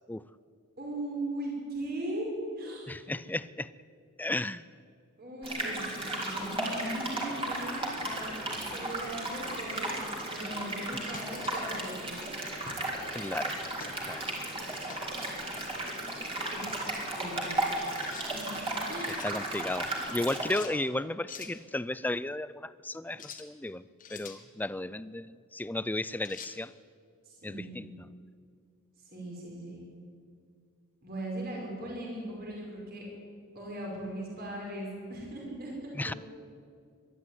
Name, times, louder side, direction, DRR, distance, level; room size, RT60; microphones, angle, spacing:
voice 1, 0.8-3.0 5.2-12.3 16.5-16.7 17.1-17.6 18.2-19.2 27.2-27.9 29.1-29.8 31.0-33.0 33.5-36.2, right 1 dB, 45° right, -2 dB, 5.6 m, -39 dB
voice 2, 2.9-3.7 4.2-4.7 13.1-14.3 19.1-26.7 27.4-28.1 36.0-36.1, left 2 dB, 10° left, 17 dB, 0.4 m, -34 dB
sound 1, 5.4-20.6, right 1 dB, 25° right, 3.8 m, -35 dB
sound 2, 11.1-11.7 12.6-12.9 13.8-14.0 14.9-15.2 18.0-18.3 18.8-19.3 20.5-20.8 21.3-21.6 23.1-23.5 24.0-24.4 26.2-26.6, left 6 dB, 40° left, 1.7 m, -46 dB
22.0 x 12.5 x 9.5 m, 2.3 s
head